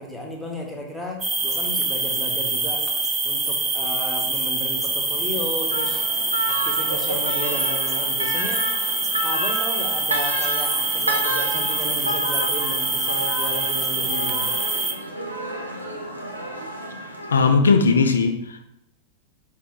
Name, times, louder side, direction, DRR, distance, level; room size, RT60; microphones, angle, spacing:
voice 1, 0.0-2.9 3.2-6.0 6.5-8.7 9.2-14.5, equal, 5° left, -1 dB, 0.9 m, -34 dB
sound 1, 1.2-14.9, right 3 dB, 20° right, 0.6 m, -25 dB
sound 2, 5.7-17.5, right 1 dB, 80° right, 0.6 m, -30 dB
voice 2, 17.3-18.7, left 4 dB, 70° left, 7 dB, 0.4 m, -18 dB
4.8 x 2.7 x 3.6 m, 0.80 s
figure-of-eight pair, 90°, 0 cm